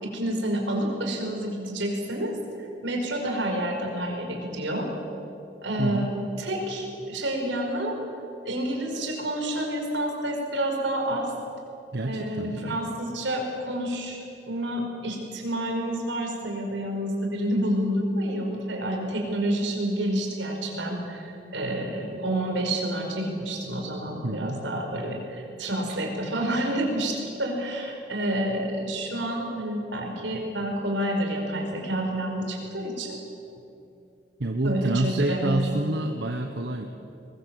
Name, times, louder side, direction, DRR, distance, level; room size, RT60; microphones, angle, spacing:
voice 1, 0.0-2.4 2.8-4.9 5.6-8.0 8.4-11.3 12.1-33.2 34.6-35.7, right 1 dB, 85° right, 2 dB, 5.0 m, -29 dB
voice 2, 5.8-6.1 11.9-12.8 24.2-24.6 34.4-36.9, right 2 dB, 65° right, 5 dB, 1.2 m, -27 dB
22.5 x 21.0 x 7.8 m, 2.8 s
head